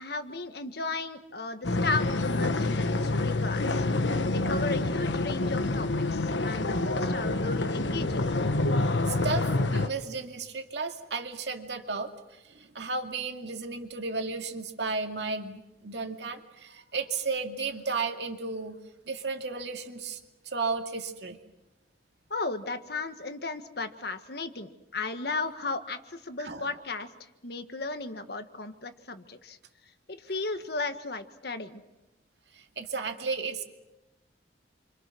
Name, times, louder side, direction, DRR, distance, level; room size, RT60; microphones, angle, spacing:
voice 1, 0.0-8.3 22.3-29.6 30.1-31.8, left 3 dB, 60° left, 8 dB, 1.7 m, -35 dB
sound 1, 1.6-9.9, left 2 dB, 85° left, 1.3 m, -27 dB
voice 2, 9.1-18.8 19.1-20.2 20.4-21.4 26.4-26.7 32.5-33.6, right 4 dB, 65° right, 4 dB, 2.4 m, -34 dB
29.0 x 25.5 x 6.3 m, 0.98 s
head